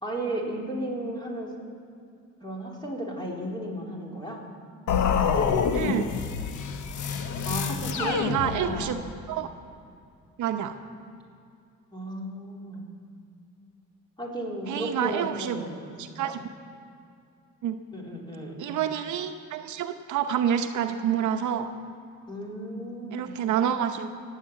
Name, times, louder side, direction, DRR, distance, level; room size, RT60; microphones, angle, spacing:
voice 1, 0.0-1.5 2.4-4.4 7.4-8.9 11.9-12.8 14.2-16.2 17.9-18.6 22.3-23.4, right 1 dB, 15° left, -2 dB, 3.9 m, -34 dB
sound 1, 4.9-9.0, left 6 dB, 75° left, 1.1 m, -27 dB
voice 2, 5.7-6.1 8.0-9.0 9.3-9.5 10.4-10.8 14.7-15.6 16.0-16.5 17.6-17.8 18.6-21.7 23.1-24.1, right 9 dB, 75° right, 7 dB, 0.9 m, -28 dB
19.0 x 8.2 x 8.7 m, 2.4 s
cardioid pair, 90°, 30 cm